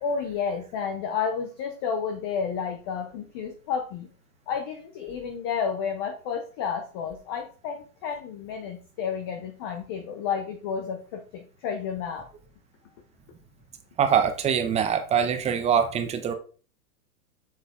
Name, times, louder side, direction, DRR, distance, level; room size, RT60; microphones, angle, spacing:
voice 1, 0.0-4.1 4.5-12.3, left 6 dB, 20° left, 7 dB, 0.3 m, -31 dB
voice 2, 14.0-16.3, right 8 dB, 15° right, 8 dB, 0.7 m, -23 dB
7.1 x 6.4 x 3.6 m, 0.37 s
hypercardioid pair, 140°, 45 cm